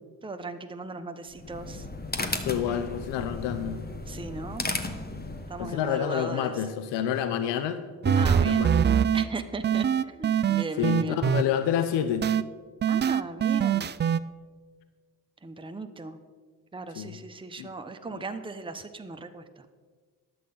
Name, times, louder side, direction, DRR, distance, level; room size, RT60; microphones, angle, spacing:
voice 1, 0.2-1.9 4.1-4.7 5.5-6.5 8.2-8.7 9.1-11.2 12.9-13.9 15.4-16.2 16.7-19.7, right 3 dB, 10° right, 7 dB, 0.8 m, -37 dB
sound 1, 1.3-5.8, left 2 dB, 20° left, 1.2 m, -35 dB
voice 2, 2.4-3.8 5.6-8.8 10.8-12.3 17.0-17.2 17.6-17.7 18.1-18.2, left 9 dB, 75° left, 9 dB, 0.7 m, -29 dB
sound 2, 8.0-9.2 9.6-11.4 12.2-12.4 12.8-14.2, right 8 dB, 25° right, 0.4 m, -23 dB
10.5 x 7.8 x 5.4 m, 1.5 s
hypercardioid pair, 40°, 42 cm